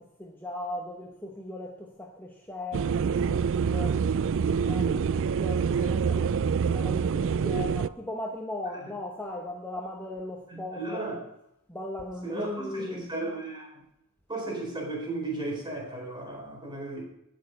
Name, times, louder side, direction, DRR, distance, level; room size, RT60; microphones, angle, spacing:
voice 1, 0.0-11.1 11.7-13.1, left 1 dB, 10° left, 1.1 m, -38 dB
sound 1, 2.7-7.9, right 6 dB, 60° right, 0.4 m, -26 dB
voice 2, 10.5-11.2 12.2-13.7 14.3-17.0, right 2 dB, 20° right, 4.3 m, -35 dB
18.0 x 6.7 x 5.3 m
head